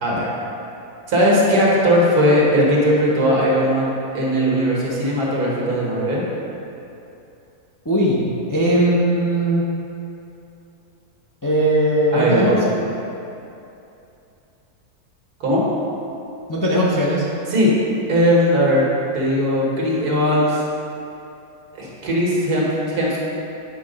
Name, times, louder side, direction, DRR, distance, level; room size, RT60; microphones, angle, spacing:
voice 1, 1.1-6.2 12.1-12.6 15.4-15.7 17.5-17.7 18.1-18.9 19.1-20.6 21.8-23.2, equal, 75° right, -5 dB, 2.0 m, -18 dB
voice 2, 7.8-8.2 8.5-9.7 11.4-12.6 16.5-17.3, right 1 dB, 25° left, -5 dB, 0.4 m, -18 dB
8.2 x 3.8 x 5.3 m, 2.7 s
omnidirectional pair, 1.6 m